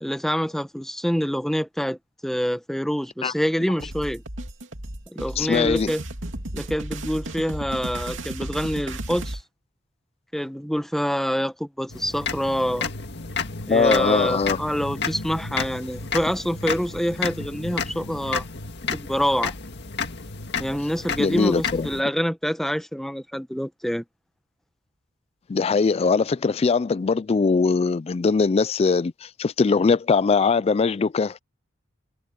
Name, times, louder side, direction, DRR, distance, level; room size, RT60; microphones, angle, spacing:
voice 1, 0.0-4.2 5.1-6.0 6.5-9.4 10.3-12.9 13.7-18.4 18.9-19.5 20.6-24.0, equal, ahead, 1.0 m, -26 dB
sound 1, 3.8-9.4, right 1 dB, 70° right, 3.0 m, -34 dB
voice 2, 5.4-5.9 13.7-14.6 21.2-21.9 25.5-29.1 29.4-31.4, left 4 dB, 30° left, 0.3 m, -21 dB
sound 2, 11.9-22.0, left 5 dB, 60° left, 1.9 m, -31 dB
head